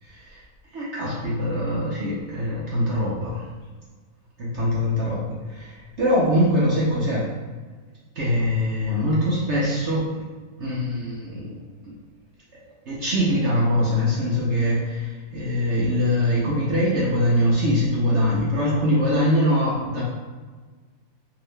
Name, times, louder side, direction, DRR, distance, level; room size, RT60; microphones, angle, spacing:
voice 1, 0.0-0.4 0.7-3.4 4.4-5.2 5.5-7.2 8.1-10.2 10.6-11.6 12.9-20.0, equal, 65° right, -6 dB, 0.7 m, -23 dB
3.6 x 2.8 x 3.1 m, 1.4 s
omnidirectional pair, 2.0 m